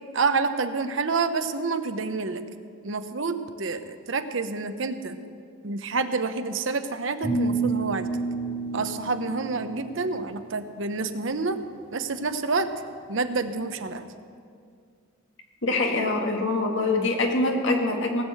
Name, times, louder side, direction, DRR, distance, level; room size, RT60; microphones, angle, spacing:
voice 1, 0.1-2.4 2.8-5.2 5.6-8.1 8.7-11.6 11.9-12.7 13.1-14.1, right 4 dB, 65° right, 9 dB, 0.8 m, -28 dB
sound 1, 7.2-10.4, right 3 dB, 30° left, 3.1 m, -29 dB
voice 2, 15.6-18.2, left 2 dB, 65° left, 2 dB, 1.8 m, -24 dB
18.5 x 6.4 x 7.7 m, 2.3 s
head